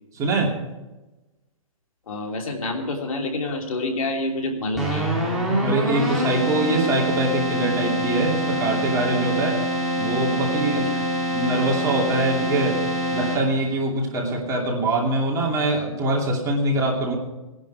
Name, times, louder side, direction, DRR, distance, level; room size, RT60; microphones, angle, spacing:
voice 1, 0.2-0.5 5.6-9.6 10.0-10.9 11.3-12.8 13.1-17.2, right 2 dB, 20° right, -1 dB, 2.7 m, -23 dB
voice 2, 2.1-5.1 10.7-11.0, left 2 dB, 75° left, 2 dB, 3.1 m, -28 dB
Keyboard (musical), 4.7-13.7, equal, ahead, 3.1 m, -25 dB
18.5 x 11.0 x 4.8 m, 1.1 s
hypercardioid pair, 150°, 18 cm